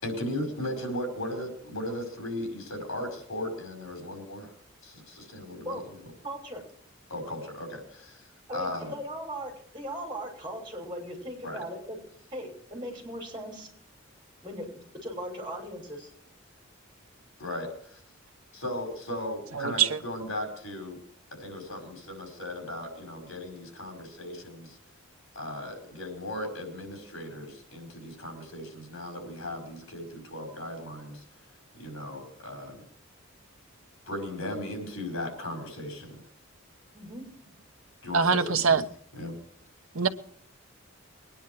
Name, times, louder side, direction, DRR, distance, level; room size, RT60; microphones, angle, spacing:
voice 1, 0.0-4.5 4.8-5.8 7.1-8.3 8.5-8.9 11.4-11.6 17.4-18.0 18.5-21.0 21.3-24.8 25.3-31.2 31.7-32.8 34.1-36.2 38.0-38.8 39.1-39.3, left 1 dB, 75° left, 5.3 m, -37 dB
voice 2, 6.2-6.6 8.5-12.0 12.3-13.7 14.4-16.1 36.9-37.3, equal, 20° right, 5.5 m, -38 dB
voice 3, 19.6-20.0 38.1-38.8 39.9-40.1, right 6 dB, 85° right, 1.1 m, -23 dB
21.5 x 10.0 x 4.7 m
head